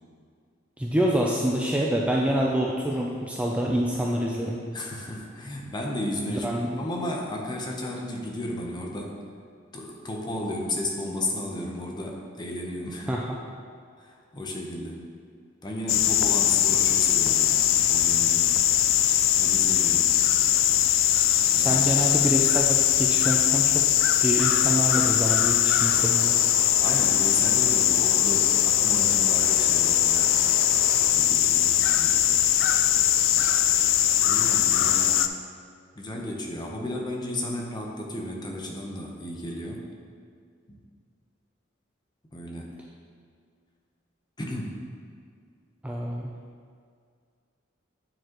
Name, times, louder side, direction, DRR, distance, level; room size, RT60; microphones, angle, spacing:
voice 1, 0.8-4.6 6.3-6.7 13.1-13.4 21.5-23.8 24.2-26.4 45.8-46.3, right 1 dB, 5° right, -2 dB, 0.3 m, -26 dB
voice 2, 4.7-9.2 9.7-13.1 14.0-15.0 15.6-18.5 19.4-20.1 21.5-21.8 26.8-30.3 31.1-32.1 34.2-35.3 35.9-39.9 40.7-40.8 42.3-42.7 44.4-44.8, left 1 dB, 20° left, -1 dB, 0.8 m, -34 dB
sound 1, 15.9-35.3, left 11 dB, 70° left, 0.3 m, -21 dB
sound 2, 25.8-31.1, right 1 dB, 30° right, 1.3 m, -39 dB
8.8 x 4.7 x 3.0 m, 2.1 s
head